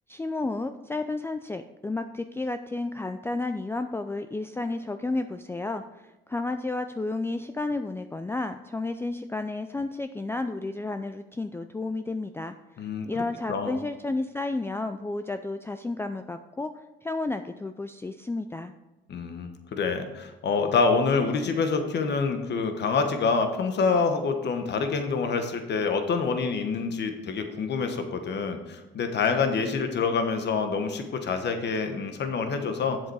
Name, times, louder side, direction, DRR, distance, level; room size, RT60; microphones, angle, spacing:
voice 1, 0.1-18.7, left 2 dB, 10° left, 8 dB, 0.4 m, -32 dB
voice 2, 19.1-33.0, left 4 dB, 60° left, 7 dB, 1.2 m, -26 dB
8.1 x 7.5 x 4.7 m, 1.1 s
cardioid pair, 90°, 20 cm